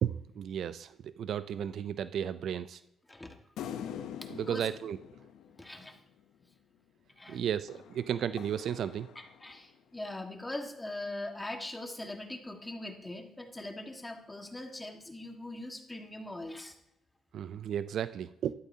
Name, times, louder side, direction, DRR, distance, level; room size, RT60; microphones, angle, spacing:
voice 1, 0.0-2.8 4.4-5.0 7.3-9.1 17.3-18.5, right 9 dB, 70° right, 14 dB, 0.4 m, -34 dB
sound 1, 3.6-6.2 7.7-9.8, left 9 dB, 85° left, 0.7 m, -45 dB
voice 2, 4.3-4.7 5.6-6.0 7.2-7.4 9.1-16.7, left 1 dB, 15° left, 4 dB, 1.6 m, -41 dB
12.5 x 12.5 x 2.8 m, 0.81 s
cardioid pair, 90°, 0 cm